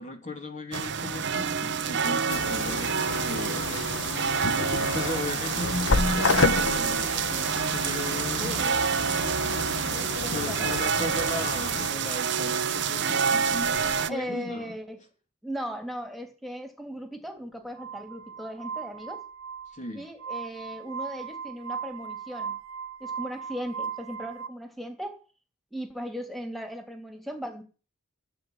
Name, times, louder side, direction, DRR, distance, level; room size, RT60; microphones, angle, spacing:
voice 1, 0.0-3.8 4.9-8.6 10.3-14.7 19.7-20.1, left 1 dB, 35° left, 2.7 m, -35 dB
sound 1, 0.7-14.1, right 6 dB, 55° right, 0.9 m, -28 dB
sound 2, 2.3-11.9, left 4 dB, 65° left, 1.1 m, -31 dB
voice 2, 8.4-10.7 14.1-15.0 15.4-19.2 19.9-22.6 23.0-25.2 25.7-27.6, equal, ahead, 3.0 m, -38 dB
Glass, 17.8-24.5, right 7 dB, 85° right, 1.3 m, -38 dB
16.0 x 7.7 x 9.1 m
head